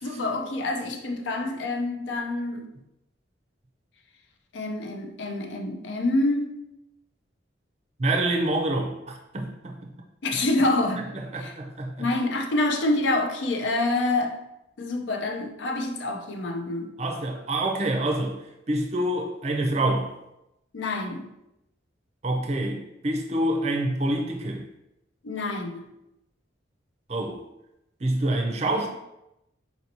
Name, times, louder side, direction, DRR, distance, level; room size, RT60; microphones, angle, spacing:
voice 1, 0.0-2.7 4.5-6.6 10.2-11.1 11.3-11.5 12.0-14.4 14.8-16.9 20.7-21.3 25.2-25.8, left 2 dB, 75° left, 3 dB, 0.5 m, -27 dB
voice 2, 8.0-9.8 11.3-12.1 17.0-18.4 18.7-20.1 22.2-24.6 27.1-27.4 28.0-28.9, right 1 dB, 35° right, 2 dB, 0.5 m, -26 dB
4.1 x 2.6 x 2.9 m, 0.88 s
head